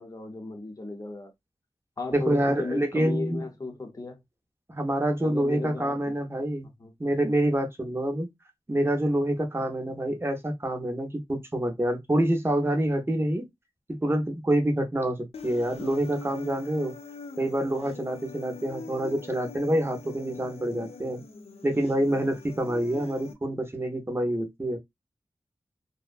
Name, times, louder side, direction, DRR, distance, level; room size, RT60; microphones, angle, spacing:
voice 1, 0.0-1.3 2.0-4.2 5.2-6.1 6.8-6.9, left 3 dB, 35° left, 0.8 m, -35 dB
voice 2, 2.1-3.5 4.7-6.7 7.0-8.3 8.7-13.5 14.0-16.9 17.4-21.2 21.6-24.8, right 1 dB, 25° right, 0.7 m, -27 dB
Human voice, 15.3-23.3, left 4 dB, 75° left, 0.5 m, -43 dB
2.6 x 2.1 x 2.4 m
wide cardioid pair, 70°, 10 cm